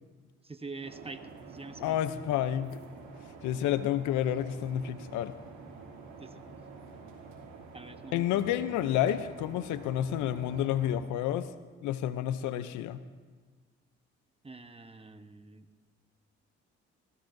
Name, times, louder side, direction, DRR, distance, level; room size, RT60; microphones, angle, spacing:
voice 1, 0.4-1.2 1.5-2.0 6.2-6.4 7.7-8.4 14.4-15.7, right 3 dB, 20° right, 9 dB, 1.1 m, -45 dB
sound 1, 0.8-11.0, right 4 dB, 75° right, 2.9 m, -48 dB
voice 2, 1.8-2.7 3.4-5.3 8.1-11.5 11.8-13.0, left 11 dB, 80° left, 13 dB, 0.7 m, -30 dB
22.5 x 17.0 x 2.7 m, 1.4 s
supercardioid pair, 60°, 29 cm